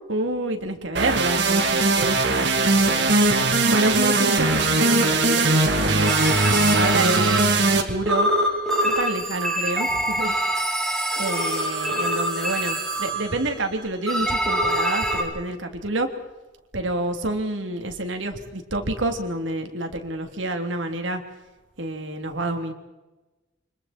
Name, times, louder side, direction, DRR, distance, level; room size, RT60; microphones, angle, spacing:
voice 1, 0.1-3.1 3.7-6.2 6.7-8.3 8.8-10.7 11.1-16.1 16.7-21.2 21.8-22.7, right 2 dB, 85° right, 4 dB, 3.2 m, -28 dB
sound 1, 1.0-7.8, right 2 dB, 65° right, 2.9 m, -20 dB
sound 2, 6.0-13.6 14.1-15.2, right 1 dB, ahead, 6.7 m, -25 dB
29.0 x 25.5 x 4.5 m, 1.1 s
head